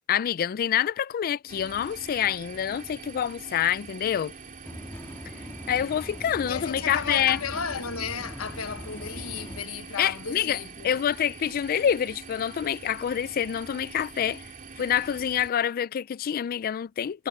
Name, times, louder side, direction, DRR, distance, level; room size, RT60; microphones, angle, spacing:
voice 1, 0.1-4.3 5.7-7.4 10.0-14.5 14.8-17.3, left 9 dB, 45° left, 0.3 m, -27 dB
sound 1, 1.5-15.5, right 4 dB, 40° right, 3.2 m, -44 dB
sound 2, 4.6-9.6, equal, 10° left, 1.6 m, -41 dB
voice 2, 6.4-11.0, left 6 dB, 75° left, 1.2 m, -34 dB
head